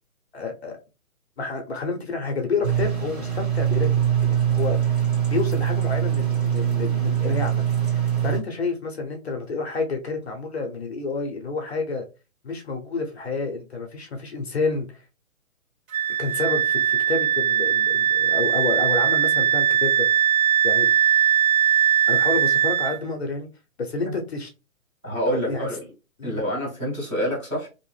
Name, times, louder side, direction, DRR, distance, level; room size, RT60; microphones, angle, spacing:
voice 1, 0.3-0.8 1.4-4.0 4.3-4.8 5.3-7.6 7.9-12.0 12.4-15.0 16.2-20.3 20.6-20.9 22.1-23.5 23.8-24.5 25.3-25.7 26.2-26.4, left 3 dB, 50° left, 0.6 m, -29 dB
sound 1, 2.6-8.4, right 9 dB, 30° right, 1.1 m, -23 dB
Wind instrument woodwind instrument, 15.9-23.0, right 9 dB, 70° right, 0.6 m, -20 dB
voice 2, 25.0-25.8 26.2-27.7, equal, 10° right, 0.8 m, -27 dB
2.7 x 2.0 x 3.1 m
hypercardioid pair, 165°, 41 cm